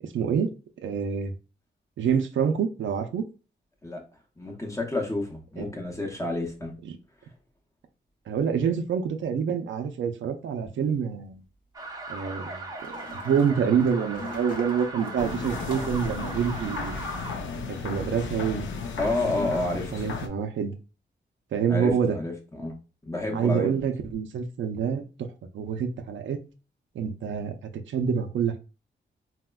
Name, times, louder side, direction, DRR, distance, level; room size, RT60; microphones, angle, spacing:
voice 1, 0.0-0.5 0.8-1.3 2.0-3.2 5.6-5.7 8.3-11.4 12.1-17.0 17.7-18.7 19.9-20.7 21.5-22.2 23.3-25.3 25.5-26.4 26.9-28.6, right 7 dB, 80° right, 0.4 m, -27 dB
voice 2, 4.4-6.8 19.0-20.1 21.7-22.7 23.1-23.8, left 2 dB, 15° left, 0.7 m, -30 dB
sound 1, 10.8-10.9 12.8-16.1, left 2 dB, 45° left, 0.8 m, -43 dB
sound 2, 11.7-17.4, right 2 dB, 20° right, 0.5 m, -38 dB
sound 3, 15.2-20.3, left 4 dB, 85° left, 0.5 m, -34 dB
4.0 x 2.1 x 2.2 m
wide cardioid pair, 140°, 19 cm